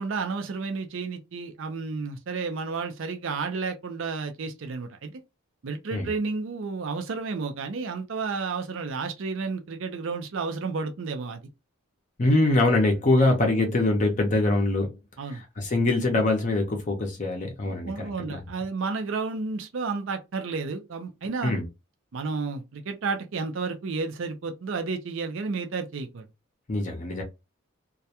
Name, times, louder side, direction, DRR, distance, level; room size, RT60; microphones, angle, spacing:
voice 1, 0.0-5.1 5.6-11.4 15.2-15.4 17.6-21.5 22.1-26.2, right 4 dB, 60° right, 0.4 m, -31 dB
voice 2, 12.2-14.9 15.3-18.4 21.4-21.7 26.7-27.2, left 2 dB, 35° left, 0.5 m, -23 dB
2.3 x 2.1 x 2.7 m
head